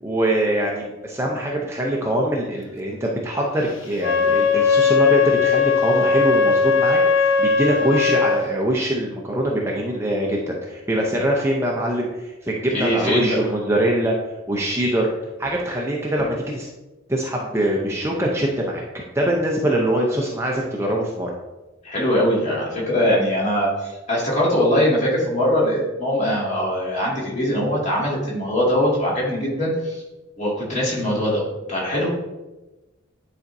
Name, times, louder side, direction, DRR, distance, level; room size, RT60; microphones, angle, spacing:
voice 1, 0.0-14.1 14.5-15.1 15.4-16.7 17.1-18.8 19.1-21.3, right 1 dB, 10° right, -2 dB, 0.6 m, -23 dB
Wind instrument woodwind instrument, 3.9-8.4, left 5 dB, 65° left, 0.6 m, -18 dB
voice 2, 12.7-13.3 21.8-30.0 30.4-32.1, equal, 35° left, -5 dB, 1.9 m, -22 dB
9.7 x 4.3 x 2.6 m, 1.1 s
head